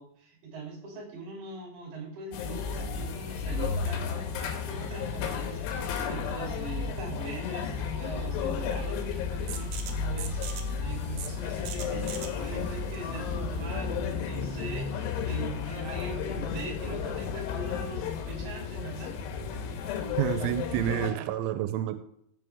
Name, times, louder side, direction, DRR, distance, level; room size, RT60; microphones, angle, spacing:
voice 1, 0.0-19.1, right 3 dB, 50° right, -1 dB, 4.2 m, -41 dB
sound 1, 2.3-21.1, left 6 dB, 75° left, 3.0 m, -33 dB
sound 2, 9.5-15.0, right 7 dB, 70° right, 2.6 m, -43 dB
voice 2, 20.2-22.0, right 12 dB, 90° right, 10 dB, 3.1 m, -29 dB
15.5 x 6.3 x 3.5 m, 0.74 s
omnidirectional pair, 5.5 m